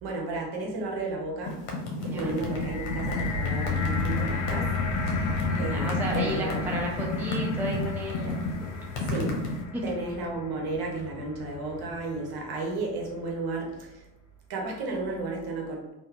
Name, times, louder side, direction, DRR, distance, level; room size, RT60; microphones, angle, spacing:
voice 1, 0.0-1.7 2.0-6.6 9.0-9.4 9.8-14.0 14.5-15.9, right 3 dB, 50° right, -1 dB, 1.3 m, -33 dB
sound 1, 1.5-9.6, left 2 dB, 65° left, 1.1 m, -31 dB
sound 2, 2.1-12.4 13.1-13.2, left 4 dB, 35° left, 0.7 m, -33 dB
voice 2, 5.3-8.7 9.7-9.8, equal, 5° right, -2 dB, 0.4 m, -34 dB
3.9 x 2.6 x 2.9 m, 0.96 s
hypercardioid pair, 75°, 49 cm